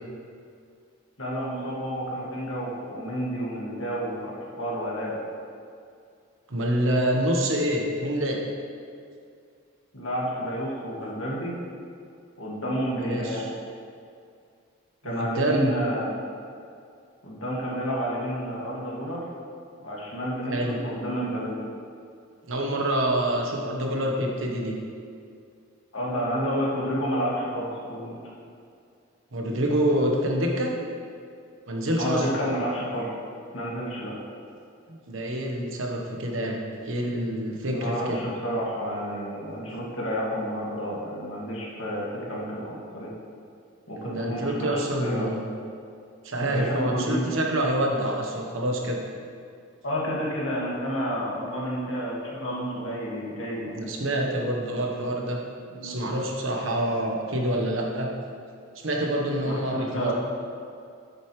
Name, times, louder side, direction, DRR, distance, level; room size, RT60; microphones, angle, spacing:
voice 1, 1.2-5.2 9.9-11.5 12.4-13.4 15.0-16.2 17.2-19.2 19.8-21.6 25.9-28.2 32.0-33.1 33.5-34.1 37.7-43.1 43.9-45.3 46.5-47.3 49.8-53.8 55.7-56.0 59.4-60.1, equal, 75° left, -5 dB, 2.1 m, -30 dB
voice 2, 6.5-8.4 12.9-13.5 15.0-15.7 20.5-20.8 22.5-24.8 29.3-30.7 31.7-32.3 34.9-36.6 36.8-38.2 44.0-45.5 46.2-49.0 53.7-55.4 55.8-58.1 58.7-60.1, right 1 dB, 65° right, 0 dB, 1.2 m, -26 dB
8.3 x 7.9 x 3.2 m, 2.3 s
head